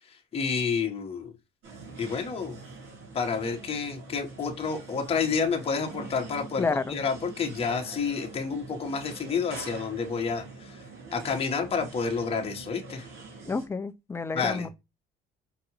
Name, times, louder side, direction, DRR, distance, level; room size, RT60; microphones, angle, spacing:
voice 1, 0.1-1.3 2.0-2.6 3.1-10.8 11.1-13.1 14.3-14.7, left 5 dB, 35° left, 1.0 m, -29 dB
sound 1, 1.6-13.7, right 3 dB, 80° right, 2.5 m, -45 dB
voice 2, 6.6-7.0 13.5-14.7, left 4 dB, 15° left, 0.4 m, -30 dB
4.7 x 2.5 x 2.9 m
cardioid pair, 110°, 17 cm